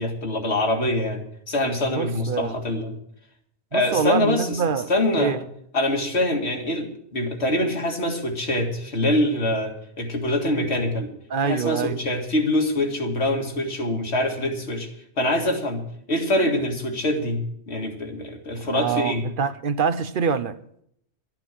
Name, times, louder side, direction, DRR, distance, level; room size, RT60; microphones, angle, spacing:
voice 1, 0.0-3.0 3.7-4.6 4.9-5.4 5.7-11.1 11.4-14.9 15.2-15.8 16.1-19.2, left 1 dB, 85° left, 2.3 m, -24 dB
voice 2, 1.9-2.5 3.7-4.9 5.2-5.4 11.3-12.0 18.6-20.6, right 6 dB, 55° right, 0.8 m, -25 dB
12.5 x 9.0 x 7.5 m
omnidirectional pair, 1.1 m